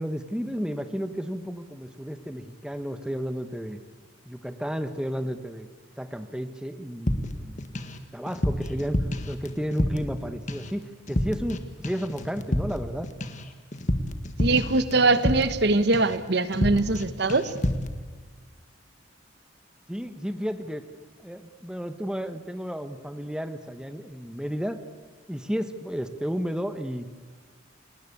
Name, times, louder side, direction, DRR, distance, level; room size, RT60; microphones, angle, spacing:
voice 1, 0.0-3.8 4.2-5.7 6.0-7.7 8.1-13.1 19.9-20.8 21.2-24.8 25.3-27.1, equal, 5° right, 9 dB, 1.2 m, -32 dB
sound 1, 7.1-8.0 8.3-10.2 10.5-10.8 11.1-11.6 11.8-15.7 15.9-16.2 16.5-17.0 17.3-17.9, left 1 dB, 40° left, 1.8 m, -29 dB
voice 2, 14.4-17.5, right 3 dB, 60° right, 13 dB, 1.1 m, -22 dB
29.5 x 19.5 x 8.6 m, 1.5 s
head